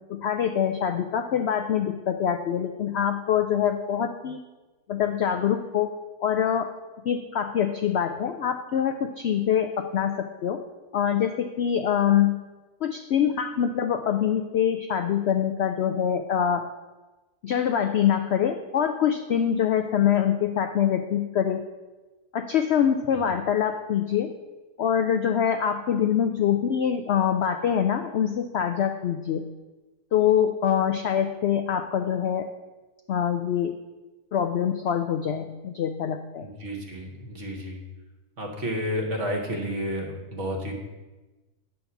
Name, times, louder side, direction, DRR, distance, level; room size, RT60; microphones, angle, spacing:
voice 1, 0.1-4.4 4.9-5.9 6.2-6.7 7.0-10.6 10.9-12.4 12.8-16.6 17.4-21.6 22.3-24.3 24.8-29.5 30.1-32.5 33.1-33.8 34.3-36.5, left 9 dB, 75° left, 7 dB, 0.6 m, -24 dB
voice 2, 36.4-37.8 38.4-40.8, equal, 50° right, 2 dB, 1.6 m, -31 dB
9.2 x 4.0 x 6.9 m, 1.2 s
omnidirectional pair, 1.6 m